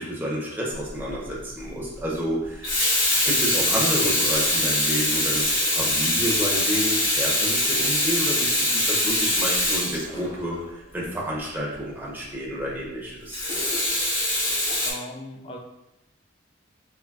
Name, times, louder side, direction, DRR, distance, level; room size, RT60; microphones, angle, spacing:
voice 1, 0.0-2.7 3.2-13.4, equal, 10° right, -5 dB, 0.8 m, -30 dB
Water tap faucet / Sink (filling or washing), 0.9-1.1 2.4-10.6 13.3-14.9, left 1 dB, 70° left, 1.2 m, -23 dB
voice 2, 14.8-15.6, left 1 dB, 25° left, 2 dB, 0.4 m, -38 dB
4.5 x 3.0 x 2.4 m, 0.91 s
head